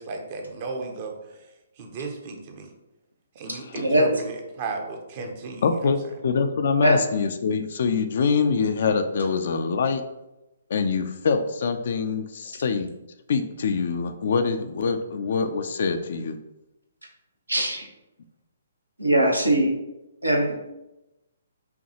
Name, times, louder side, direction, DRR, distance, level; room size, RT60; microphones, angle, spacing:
voice 1, 0.0-1.4 1.8-2.7 3.3-5.9, right 3 dB, 40° right, 3 dB, 0.6 m, -34 dB
voice 2, 5.6-10.0 10.7-12.9 13.3-16.4, left 5 dB, 55° left, 8 dB, 0.3 m, -24 dB
voice 3, 17.5-17.9 19.0-19.7 20.2-20.5, right 1 dB, 90° right, 1 dB, 0.9 m, -20 dB
5.6 x 2.3 x 2.8 m, 0.95 s
figure-of-eight pair, 130°, 0 cm